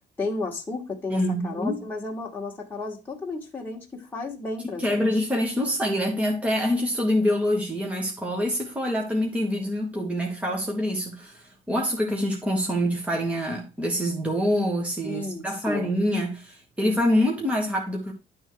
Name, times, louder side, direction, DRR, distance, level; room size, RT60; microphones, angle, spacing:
voice 1, 0.2-5.0 15.1-15.9, left 3 dB, 10° left, 1.7 m, -33 dB
voice 2, 1.1-1.8 4.8-18.1, equal, 5° right, 1.5 m, -25 dB
11.0 x 3.7 x 4.7 m
cardioid pair, 155°, 17 cm